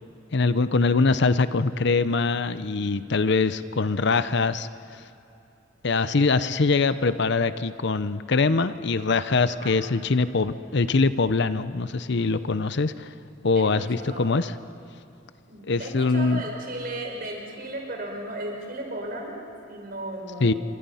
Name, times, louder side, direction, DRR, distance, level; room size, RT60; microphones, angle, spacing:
voice 1, 0.3-4.7 5.8-13.1 13.4-14.5 15.7-16.4 20.4-20.5, left 4 dB, 65° left, 13 dB, 0.7 m, -23 dB
voice 2, 14.0-14.4 15.5-20.6, right 1 dB, 50° right, 1 dB, 5.1 m, -35 dB
27.5 x 25.0 x 5.7 m, 2.8 s
head